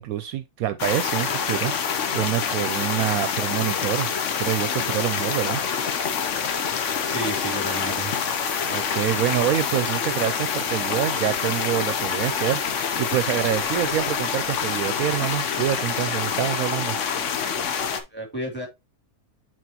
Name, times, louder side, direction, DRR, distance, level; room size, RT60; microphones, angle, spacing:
voice 1, 0.0-4.1 4.4-5.6 8.7-17.0, right 12 dB, 75° right, 1.0 m, -26 dB
sound 1, 0.8-18.0, left 6 dB, 60° left, 1.1 m, -26 dB
voice 2, 7.0-8.1 18.1-18.7, right 1 dB, 5° left, 2.9 m, -31 dB
8.1 x 4.5 x 2.9 m
omnidirectional pair, 1.6 m